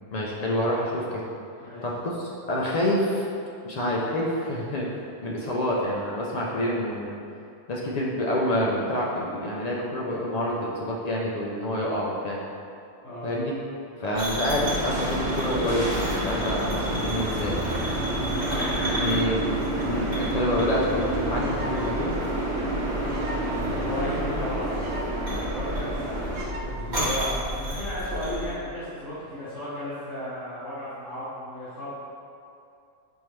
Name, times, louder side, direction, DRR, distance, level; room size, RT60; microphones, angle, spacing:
voice 1, 0.1-1.2 1.8-3.2 3.6-7.1 7.7-12.4 13.2-13.5 14.0-17.6 18.8-22.2, left 1 dB, 90° left, -4 dB, 0.3 m, -27 dB
sound 1, 14.1-28.5, equal, 60° right, 1.7 m, -33 dB
sound 2, 14.4-26.4, right 1 dB, 45° right, 0.8 m, -29 dB
voice 2, 18.2-19.0 23.7-31.9, left 1 dB, 65° left, -17 dB, 1.7 m, -35 dB
sound 3, 20.5-20.6 20.8-20.9 21.1-21.8 22.1-22.2 22.4-22.5 23.0-23.5 23.8-23.9 24.1-24.2 24.4-25.1 25.4-25.5 25.7-26.0 26.3-26.7 27.3-27.6, equal, 80° right, 1.1 m, -40 dB
5.4 x 3.2 x 2.9 m, 2.6 s
omnidirectional pair, 1.3 m